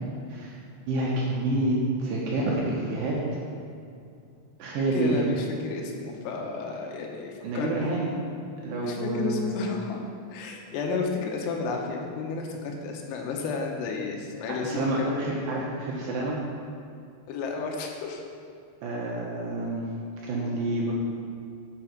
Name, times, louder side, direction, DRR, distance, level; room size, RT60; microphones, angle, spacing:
voice 1, 0.9-3.3 4.6-5.2 7.4-8.1 8.6-9.6 14.6-16.4 18.8-19.8 20.2-20.9, right 2 dB, 70° right, -4 dB, 2.8 m, -28 dB
voice 2, 4.8-7.9 8.8-10.0 10.3-15.2 17.3-18.2, left 4 dB, 85° left, 1 dB, 3.7 m, -32 dB
7.9 x 7.6 x 5.9 m, 2.5 s
omnidirectional pair, 5.9 m